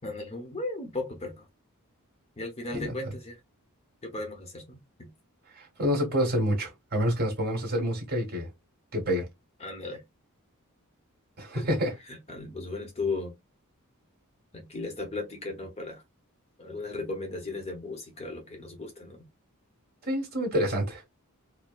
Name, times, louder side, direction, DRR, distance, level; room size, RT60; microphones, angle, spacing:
voice 1, 0.0-1.5 2.4-3.4 4.0-5.1 9.6-10.0 11.5-11.7 12.1-13.3 14.5-16.0 16.6-19.3, left 3 dB, 30° left, 0.8 m, -36 dB
voice 2, 5.6-8.5 8.9-9.3 11.4-11.9 20.0-21.0, equal, 45° right, 1.5 m, -28 dB
4.3 x 2.0 x 2.3 m
head